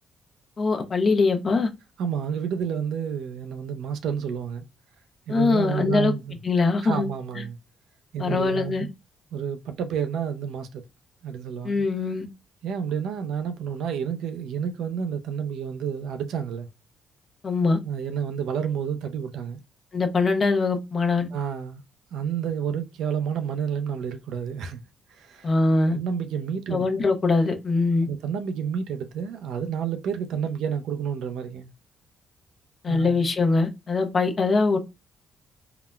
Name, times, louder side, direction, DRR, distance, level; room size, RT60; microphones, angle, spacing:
voice 1, 0.6-1.7 5.3-6.1 6.4-7.1 7.4-7.5 8.2-8.9 11.6-12.3 17.4-17.8 19.9-21.3 25.4-26.0 26.7-28.1 32.8-34.8, left 3 dB, 40° left, 0.6 m, -22 dB
voice 2, 2.0-4.6 5.3-6.4 6.8-7.6 8.1-8.9 9.3-10.8 11.2-11.8 12.6-16.7 17.8-19.6 21.3-21.8 22.1-24.8 25.1-25.5 25.9-26.8 28.1-31.7 32.9-33.2, right 7 dB, 80° right, 0.4 m, -30 dB
3.7 x 2.1 x 2.2 m
cardioid pair, 90°, 0 cm